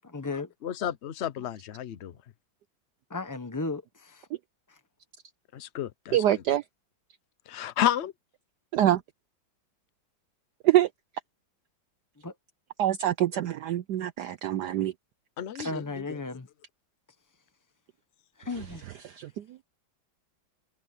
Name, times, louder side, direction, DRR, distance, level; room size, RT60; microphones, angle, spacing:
voice 1, 0.0-0.5 3.1-4.3 4.7-4.8 12.2-12.3 15.6-16.5 18.4-19.0, left 3 dB, 25° left, 0.4 m, -35 dB
voice 2, 0.6-2.1 5.5-6.4 7.5-8.1 15.4-15.8, left 11 dB, 60° left, 0.7 m, -31 dB
voice 3, 6.1-6.6 8.7-9.0 10.6-10.9 12.8-14.9 15.6-15.7 19.1-19.4, right 12 dB, 70° right, 1.0 m, -25 dB
omnidirectional pair, 2.2 m